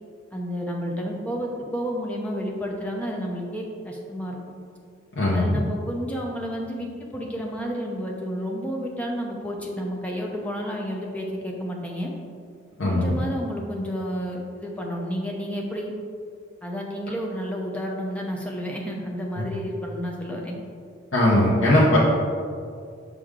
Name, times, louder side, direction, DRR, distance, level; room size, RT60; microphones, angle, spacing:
voice 1, 0.3-4.4 5.3-12.1 12.8-15.9 16.6-20.5, equal, 5° left, -1 dB, 0.6 m, -31 dB
voice 2, 5.2-5.6 12.8-13.1 21.1-22.0, left 1 dB, 70° left, -6 dB, 0.9 m, -19 dB
6.7 x 4.8 x 3.7 m, 2.3 s
head